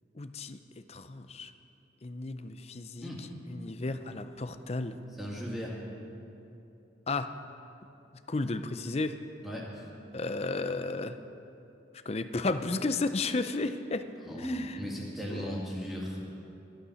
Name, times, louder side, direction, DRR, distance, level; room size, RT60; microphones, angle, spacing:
voice 1, 0.1-0.6 0.9-1.5 2.0-5.0 7.1-7.3 8.3-9.2 10.1-11.2 12.1-14.1 14.4-14.8 15.3-15.4, left 3 dB, 35° left, 10 dB, 0.6 m, -33 dB
voice 2, 5.2-5.8 9.4-9.8 14.2-16.2, equal, ahead, -5 dB, 2.4 m, -36 dB
13.5 x 11.5 x 6.4 m, 2.9 s
head